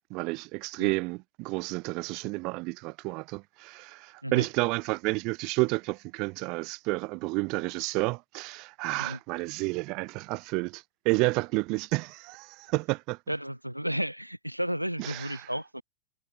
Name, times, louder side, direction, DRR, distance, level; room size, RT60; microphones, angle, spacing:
voice 1, 0.1-13.2 15.0-15.5, right 26 dB, 40° right, 0.3 m, -30 dB
voice 2, 13.3-15.8, equal, 90° right, 0.9 m, -33 dB
figure-of-eight pair, 90°, 0 cm